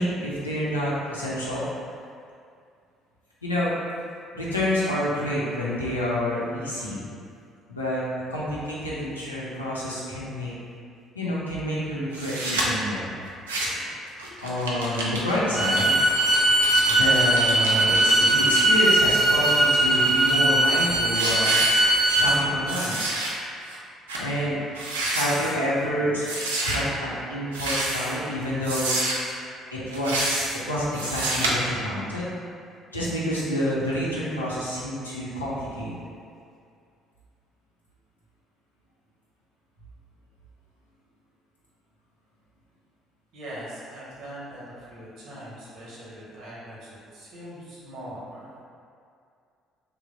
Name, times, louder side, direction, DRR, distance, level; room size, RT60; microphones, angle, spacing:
voice 1, 0.0-1.6 3.4-3.7 4.3-7.1 7.7-8.0 8.3-10.6 11.1-13.1 14.4-16.0 16.9-21.6 22.1-23.0 24.2-24.6 25.0-26.3 26.6-28.9 29.7-32.3 32.9-36.0, equal, 85° left, -8 dB, 0.6 m, -28 dB
sound 1, 12.1-12.6 13.3-13.9 14.2-18.6 19.1-20.3 20.7-20.9 21.1-22.4 22.7-23.3 23.7-23.8 24.1-24.3 24.7-25.5 26.2-26.8 27.5-28.2 28.6-29.3 29.9-30.6 30.9-31.5, right 2 dB, 80° right, 0.4 m, -29 dB
Bowed string instrument, 15.5-22.3, right 1 dB, 20° right, 0.5 m, -20 dB
voice 2, 43.3-48.5, right 1 dB, 60° right, -7 dB, 1.0 m, -41 dB
3.1 x 2.2 x 3.9 m, 2.4 s
figure-of-eight pair, 50°, 0 cm